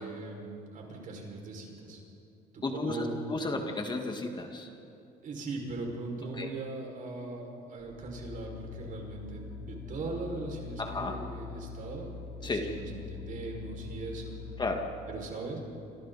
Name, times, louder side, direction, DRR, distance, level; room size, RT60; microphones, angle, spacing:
voice 1, 0.0-2.0 2.5-3.5 5.2-12.1 12.4-14.3 15.1-15.6, right 3 dB, 50° right, 0 dB, 5.9 m, -39 dB
voice 2, 2.6-3.0 3.3-4.7 6.4-6.5 10.8-11.2 12.4-12.6 14.6-14.8, left 3 dB, 25° left, 3 dB, 2.0 m, -33 dB
sound 1, 7.8-14.8, left 5 dB, 5° left, 3.4 m, -43 dB
27.5 x 26.5 x 4.2 m, 2.7 s
cardioid pair, 110°, 17 cm